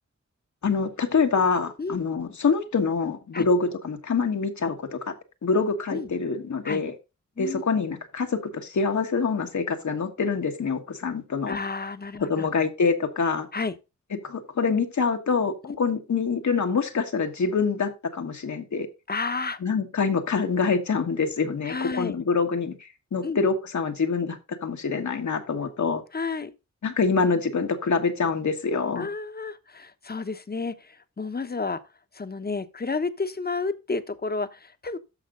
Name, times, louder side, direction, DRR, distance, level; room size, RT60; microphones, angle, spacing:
voice 1, 0.6-5.1 5.4-6.9 7.4-11.6 12.3-13.5 14.2-18.9 19.6-26.0 26.8-29.1, left 5 dB, 75° left, 1.4 m, -25 dB
voice 2, 11.5-12.5 13.5-13.7 15.6-15.8 19.1-19.6 21.6-22.1 23.2-23.4 26.1-26.5 29.0-31.8 32.1-35.0, left 4 dB, 35° left, 0.9 m, -31 dB
13.5 x 5.1 x 3.7 m
wide cardioid pair, 65°, 29 cm